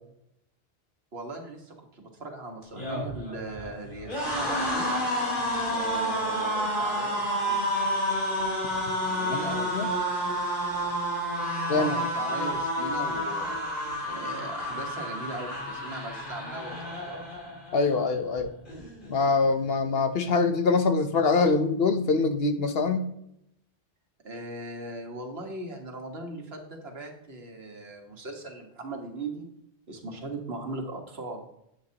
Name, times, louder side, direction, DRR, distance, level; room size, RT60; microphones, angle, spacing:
voice 1, 1.1-5.0 5.7-7.7 9.1-9.7 11.7-17.2 24.2-29.5 29.9-31.4, right 2 dB, 75° right, 2 dB, 1.9 m, -39 dB
sound 1, 2.6-17.8 18.2-18.4 18.7-19.5, equal, 55° left, 3.7 m, -30 dB
voice 2, 17.7-18.5 19.1-23.1, left 4 dB, 70° left, 8 dB, 1.1 m, -24 dB
10.5 x 9.1 x 3.0 m, 0.78 s
omnidirectional pair, 1.1 m